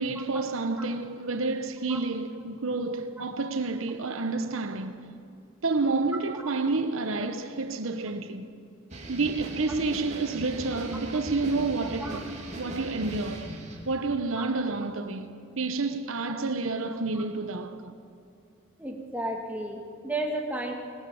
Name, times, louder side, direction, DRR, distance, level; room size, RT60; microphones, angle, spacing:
voice 1, 0.0-5.0 5.6-8.5 9.1-12.3 12.6-13.6 13.9-15.3 15.6-17.9, right 3 dB, 90° right, 1.0 m, -29 dB
sound 1, 8.9-13.9, right 1 dB, 35° right, 2.7 m, -39 dB
voice 2, 18.8-20.7, right 1 dB, 10° right, 2.0 m, -33 dB
20.5 x 19.0 x 7.1 m
head